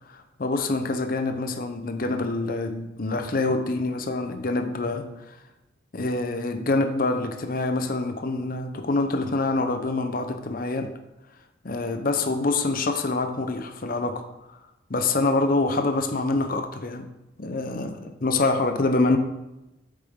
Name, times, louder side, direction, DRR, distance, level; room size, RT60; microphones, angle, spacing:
voice 1, 0.1-5.1 5.9-10.9 11.7-14.2 14.5-14.6 14.9-17.1 17.4-19.2, left 3 dB, 45° left, 7 dB, 0.7 m, -26 dB
8.2 x 7.0 x 3.7 m, 0.94 s
head